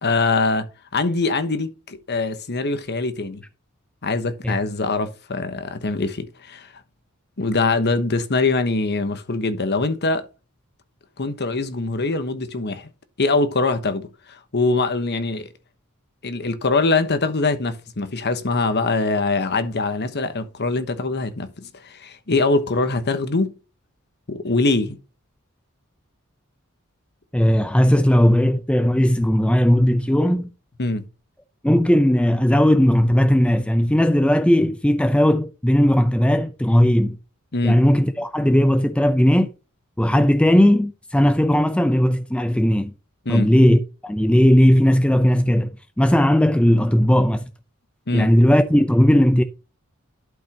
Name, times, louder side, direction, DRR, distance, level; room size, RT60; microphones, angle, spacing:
voice 1, 0.0-3.4 4.0-6.7 7.4-10.3 11.2-12.9 13.2-15.5 16.2-23.5 24.3-25.0 30.8-31.1 37.5-37.8 43.2-43.5 48.1-48.3, left 3 dB, 50° left, 1.2 m, -23 dB
voice 2, 27.3-30.5 31.6-37.2 37.6-39.5 40.0-42.9 43.3-45.7 46.0-47.4 48.1-49.4, equal, 5° left, 0.5 m, -17 dB
12.0 x 5.4 x 2.9 m
head